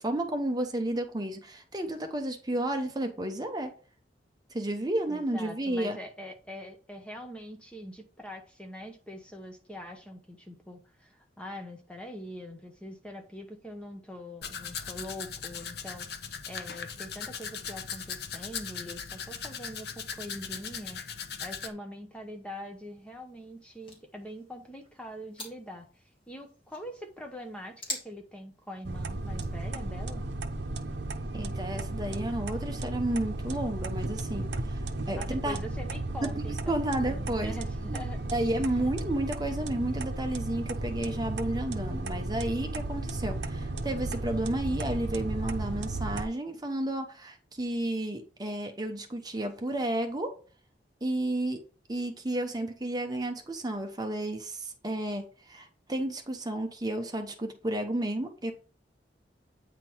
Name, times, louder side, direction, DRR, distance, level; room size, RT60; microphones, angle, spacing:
voice 1, 0.0-3.7 4.5-6.0 31.3-34.8 35.1-35.6 36.4-37.5 37.9-38.0 38.3-50.3 51.0-51.6 51.9-58.5, right 1 dB, 25° right, 0.9 m, -32 dB
voice 2, 5.1-21.0 21.4-25.9 26.3-30.2 35.2-36.8 37.1-38.2, equal, 5° left, 0.9 m, -43 dB
Domestic sounds home sounds, 14.4-21.7, left 6 dB, 65° left, 0.8 m, -39 dB
sound 1, 21.8-29.6, left 1 dB, 30° left, 2.5 m, -47 dB
sound 2, 28.8-46.2, right 2 dB, 75° right, 0.8 m, -34 dB
8.8 x 3.8 x 4.6 m
head